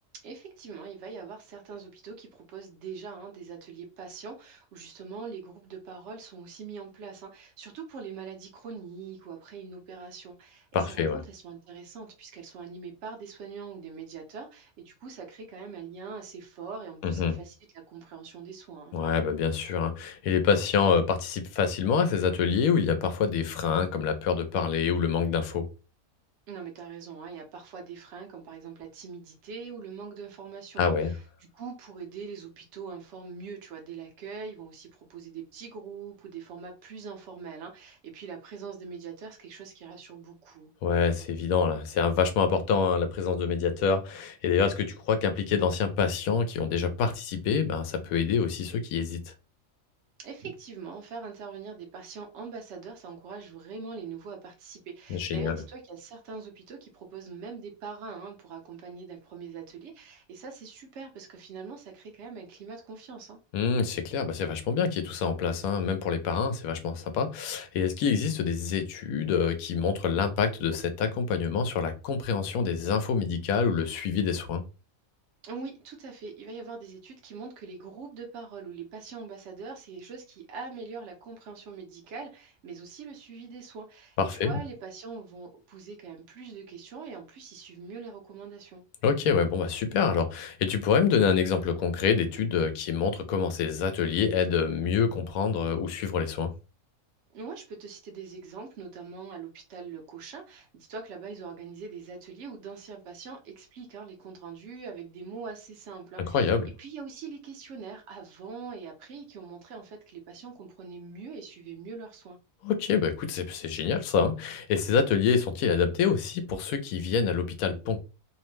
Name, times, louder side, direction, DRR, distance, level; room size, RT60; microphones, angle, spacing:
voice 1, 0.2-17.5 17.9-19.0 26.5-40.7 50.2-63.4 75.4-88.8 97.3-112.4, right 5 dB, 60° right, 1.0 m, -42 dB
voice 2, 10.7-11.2 17.0-17.4 18.9-25.7 30.8-31.1 40.8-49.3 55.1-55.6 63.5-74.6 84.2-84.6 89.0-96.5 106.3-106.7 112.6-118.0, left 6 dB, 85° left, 1.0 m, -26 dB
2.9 x 2.1 x 3.1 m
omnidirectional pair, 1.4 m